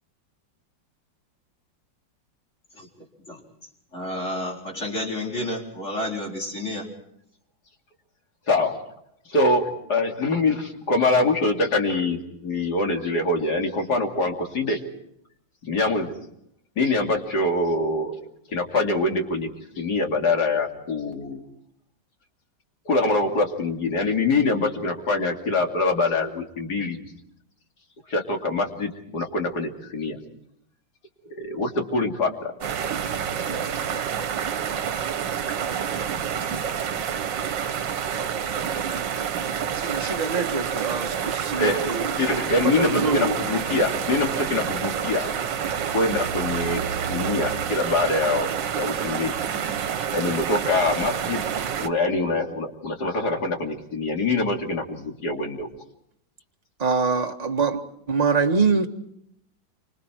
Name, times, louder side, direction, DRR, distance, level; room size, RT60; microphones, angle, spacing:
voice 1, 3.9-6.9, left 1 dB, 40° left, 4.8 m, -30 dB
voice 2, 9.3-14.8 15.6-16.2 16.8-18.1 18.5-19.5 19.8-21.4 22.8-27.0 28.1-30.2 31.3-32.5 41.6-45.5 45.9-46.8 47.1-48.5 48.7-49.4 50.1-51.4 51.8-55.7, left 2 dB, 60° left, 3.4 m, -24 dB
sound 1, 32.6-51.9, right 8 dB, 75° right, 1.7 m, -28 dB
voice 3, 39.7-42.4 42.7-43.3 56.8-57.8 58.1-58.9, right 4 dB, 20° right, 1.6 m, -24 dB
29.0 x 26.0 x 4.6 m
omnidirectional pair, 2.0 m